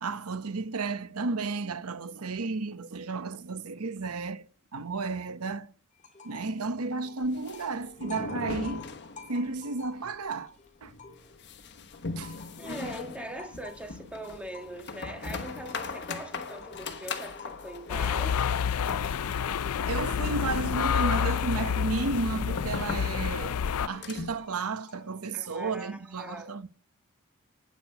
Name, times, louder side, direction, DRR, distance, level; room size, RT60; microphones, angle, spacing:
voice 1, 0.0-4.5 4.7-5.7 6.2-8.9 9.3-10.6 10.8-10.9 12.2-12.4 19.9-23.6 23.9-26.7, right 3 dB, 75° right, 0.9 m, -33 dB
sound 1, 6.0-6.6 6.9-11.5 11.9-25.8, left 4 dB, 35° left, 2.3 m, -51 dB
sound 2, 7.2-9.6 9.8-9.9 10.3-10.4 10.8-24.5, left 4 dB, 55° left, 1.2 m, -40 dB
voice 2, 12.6-18.4 25.3-26.5, right 1 dB, 5° right, 1.6 m, -41 dB
sound 3, 17.9-23.9, left 7 dB, 80° left, 0.5 m, -28 dB
9.1 x 8.6 x 5.7 m
head